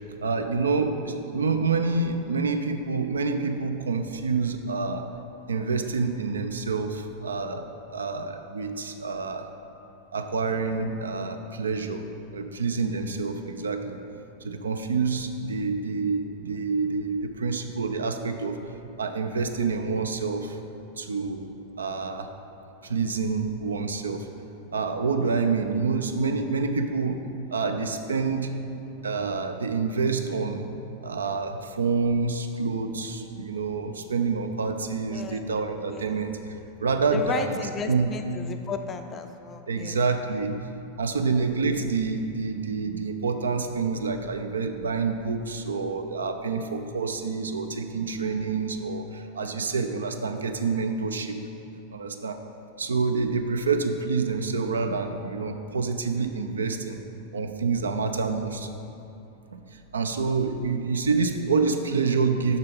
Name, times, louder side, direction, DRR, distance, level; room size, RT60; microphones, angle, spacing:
voice 1, 0.2-5.0 5.5-9.5 10.1-14.0 14.4-18.6 19.0-20.6 21.0-21.5 21.8-22.3 22.8-24.3 24.7-27.2 27.5-28.5 29.0-30.7 31.0-36.4 36.8-37.6 37.9-38.1 39.7-40.6 41.0-51.4 51.9-52.4 52.8-57.0 57.3-58.7 59.5-62.6, right 4 dB, 70° right, 7 dB, 0.5 m, -27 dB
voice 2, 35.1-35.4 35.8-36.2 37.1-40.0, left 5 dB, 25° left, 6 dB, 0.4 m, -34 dB
6.6 x 6.0 x 5.2 m, 2.8 s
figure-of-eight pair, 90°, 0 cm